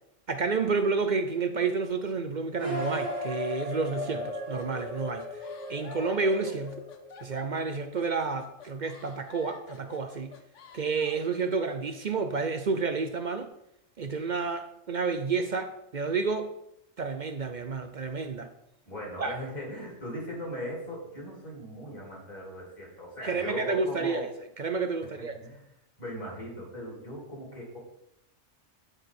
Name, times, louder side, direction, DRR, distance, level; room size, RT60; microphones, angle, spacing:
voice 1, 0.3-5.4 5.7-6.8 7.2-10.4 10.7-13.5 14.0-16.5 17.0-18.5 19.2-19.4 23.2-24.3 24.6-25.4, right 4 dB, 50° right, 7 dB, 0.6 m, -30 dB
sound 1, 2.6-7.4, equal, 25° right, 1.5 m, -36 dB
sound 2, 4.5-11.3, left 7 dB, 75° left, 1.1 m, -50 dB
voice 2, 18.9-24.3 25.4-25.6 26.0-27.8, left 1 dB, 35° left, -3 dB, 3.1 m, -39 dB
11.0 x 4.7 x 4.8 m, 0.81 s
omnidirectional pair, 1.3 m